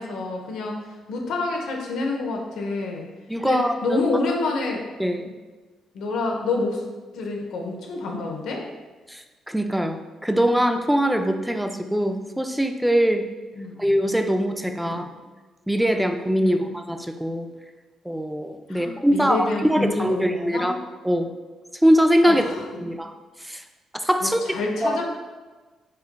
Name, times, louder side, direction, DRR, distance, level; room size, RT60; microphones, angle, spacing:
voice 1, 0.0-3.1 3.4-4.8 5.9-6.8 7.1-8.6 13.5-13.8 14.9-15.1 16.4-16.7 18.7-20.7 22.3-22.8 24.2-25.0, left 3 dB, 80° left, 1 dB, 0.7 m, -28 dB
voice 2, 3.3-4.0 5.0-5.3 9.1-13.3 13.8-15.1 15.7-17.5 18.1-20.7 21.0-21.3 21.8-22.4 22.8-23.1 23.4-23.6 23.9-24.4 24.8-25.0, equal, 5° right, 6 dB, 0.4 m, -22 dB
5.4 x 3.9 x 2.2 m, 1.3 s
cardioid pair, 90°, 0 cm